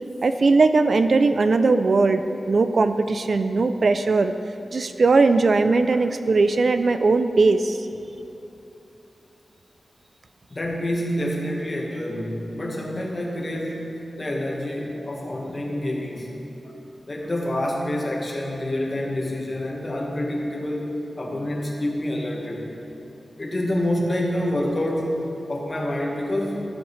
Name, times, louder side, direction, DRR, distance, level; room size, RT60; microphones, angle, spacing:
voice 1, 0.2-4.3 4.7-7.9, right 3 dB, 55° right, 9 dB, 0.3 m, -19 dB
voice 2, 10.5-16.3 16.6-16.8 17.1-22.6 23.4-26.6, left 1 dB, 30° left, -1 dB, 1.4 m, -27 dB
13.5 x 7.2 x 3.2 m, 3.0 s
wide cardioid pair, 115°, 0 cm